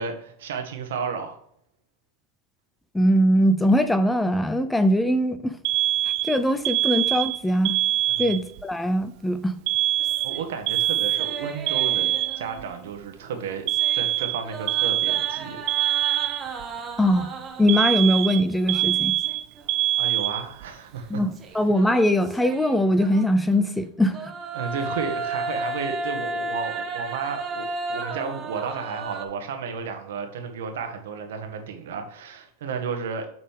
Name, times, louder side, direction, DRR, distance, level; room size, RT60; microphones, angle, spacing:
voice 1, 0.0-1.4 8.1-8.2 10.2-12.1 12.4-13.6 13.9-15.6 20.0-21.2 24.5-33.3, right 6 dB, 80° right, 1.4 m, -32 dB
voice 2, 2.9-5.6 6.2-7.8 8.2-9.6 17.0-17.3 17.6-19.2 21.1-24.3, equal, 5° left, 0.6 m, -21 dB
Alarm, 5.6-8.6 9.7-12.6 13.7-16.6 17.7-20.7, right 13 dB, 55° right, 0.3 m, -24 dB
sound 1, 10.0-12.9 13.2-17.9 18.6-19.7 20.0-20.1 21.3-23.6 24.0-29.2, right 2 dB, 25° right, 1.2 m, -35 dB
7.4 x 4.2 x 3.6 m
hypercardioid pair, 110°, 0 cm